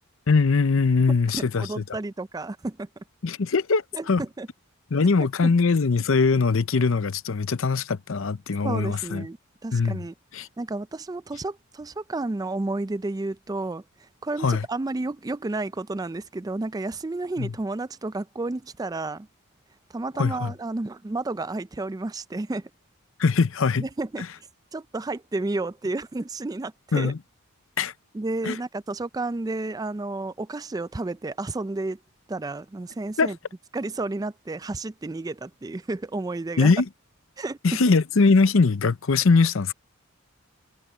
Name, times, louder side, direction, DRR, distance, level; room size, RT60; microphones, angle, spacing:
voice 1, 0.3-1.8 3.2-4.2 4.9-9.3 9.7-10.0 10.3-10.5 14.4-14.6 17.4-17.5 20.2-20.5 23.2-23.9 26.9-27.2 27.8-27.9 28.4-28.6 33.2-33.3 36.6-36.9 37.6-39.7, left 4 dB, 65° left, 0.6 m, -21 dB
voice 2, 1.3-2.9 3.9-4.5 5.4-5.5 8.6-9.4 9.6-10.1 10.6-19.3 19.9-22.7 23.8-24.2 24.7-27.1 28.1-32.0 32.3-33.4 33.7-36.7 37.4-37.9, right 2 dB, 15° right, 0.4 m, -31 dB
head